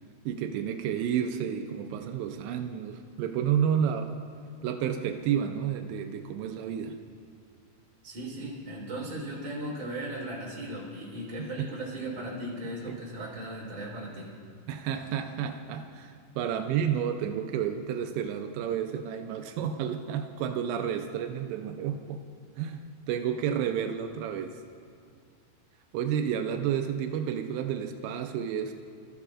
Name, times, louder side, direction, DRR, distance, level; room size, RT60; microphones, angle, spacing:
voice 1, 0.3-4.2 4.6-7.0 11.4-11.7 12.9-13.0 14.7-22.2 22.6-24.6 25.9-28.7, right 8 dB, 90° right, 5 dB, 2.5 m, -31 dB
voice 2, 8.0-14.3, right 1 dB, 35° right, -5 dB, 4.2 m, -37 dB
29.0 x 13.5 x 2.4 m, 2.2 s
omnidirectional pair, 5.8 m